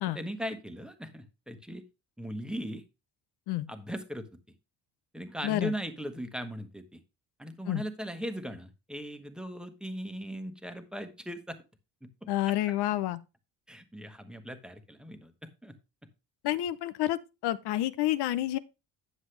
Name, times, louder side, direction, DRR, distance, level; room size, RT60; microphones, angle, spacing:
voice 1, 0.0-1.8 2.2-2.8 3.7-4.3 5.1-7.0 7.4-11.6 12.0-12.3 13.7-15.7, equal, ahead, 1.2 m, -39 dB
voice 2, 12.3-13.2 16.4-18.6, left 14 dB, 85° left, 0.8 m, -29 dB
9.7 x 7.3 x 3.3 m
cardioid pair, 140°, 38 cm